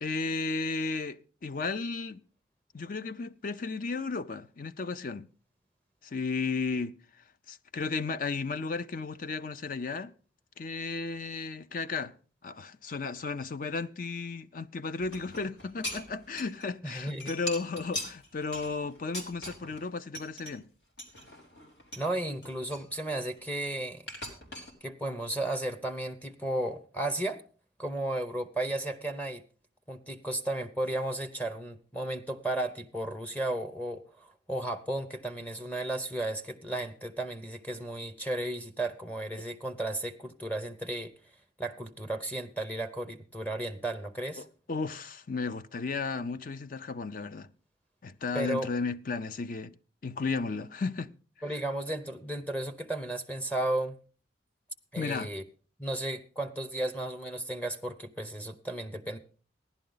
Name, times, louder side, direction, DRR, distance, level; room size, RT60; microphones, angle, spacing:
voice 1, 0.0-2.2 2.7-5.3 6.0-6.9 7.5-10.1 10.6-12.1 12.4-20.7 44.4-47.5 48.0-49.7 50.0-51.1 55.0-55.3, left 4 dB, 50° left, 0.5 m, -34 dB
sound 1, 15.0-16.7 16.9-19.8 20.2-20.5 21.0-22.1 22.4-23.6 24.1-24.7, left 1 dB, 70° left, 3.2 m, -41 dB
voice 2, 16.8-17.3 22.0-24.1 24.8-27.4 27.8-29.4 29.9-41.1 41.6-44.4 48.3-48.7 51.4-54.0 54.9-55.4 55.8-59.2, right 1 dB, 10° left, 0.7 m, -34 dB
15.5 x 11.0 x 3.9 m
head